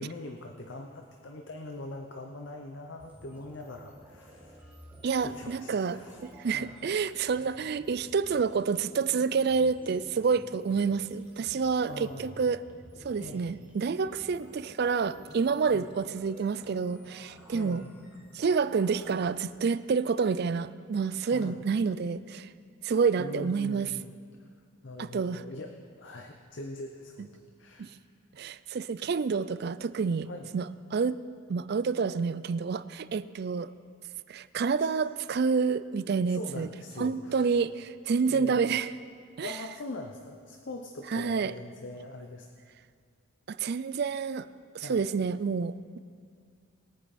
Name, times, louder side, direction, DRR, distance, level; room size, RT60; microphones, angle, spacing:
voice 1, 0.0-4.7 5.2-6.8 11.8-12.4 13.2-13.4 15.6-15.9 17.5-18.0 21.3-21.6 23.2-24.1 24.8-27.3 27.6-27.9 30.2-30.5 34.8-34.9 36.3-37.5 38.3-38.8 39.4-42.5 44.8-45.0, left 2 dB, 60° left, 4 dB, 0.7 m, -42 dB
sound 1, 3.0-19.3, right 1 dB, 10° right, 1.5 m, -53 dB
voice 2, 5.0-12.6 13.0-17.8 18.3-22.5 22.8-23.9 25.0-25.4 27.8-27.9 28.4-30.3 30.5-31.2 31.5-33.7 34.3-36.7 37.0-38.9 39.4-39.5 41.1-41.5 43.5-44.5 44.7-46.0, right 5 dB, 50° right, 15 dB, 0.3 m, -28 dB
21.0 x 9.2 x 4.2 m, 2.1 s
head